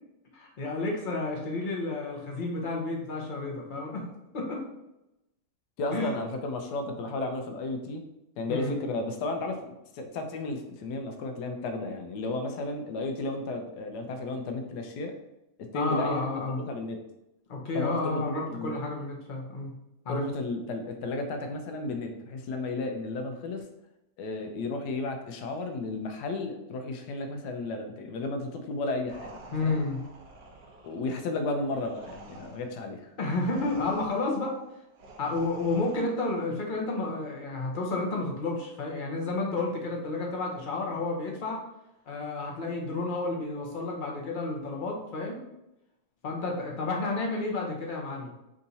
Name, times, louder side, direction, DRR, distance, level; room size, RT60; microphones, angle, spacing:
voice 1, 0.3-4.0 4.3-4.6 5.9-6.1 8.5-8.8 15.7-16.6 17.5-19.7 20.0-20.2 29.5-30.0 33.2-34.5 35.2-41.6 42.1-45.4 46.2-48.3, left 3 dB, 45° left, -1 dB, 0.7 m, -31 dB
voice 2, 5.8-8.0 8.4-9.6 9.9-15.1 15.7-17.0 17.7-18.8 20.1-23.7 24.2-29.3 29.6-29.8 30.8-33.1, left 2 dB, 90° left, 4 dB, 1.2 m, -33 dB
sound 1, 29.1-36.5, right 2 dB, 80° right, 1.3 m, -49 dB
3.6 x 2.8 x 4.0 m, 0.90 s
omnidirectional pair, 1.7 m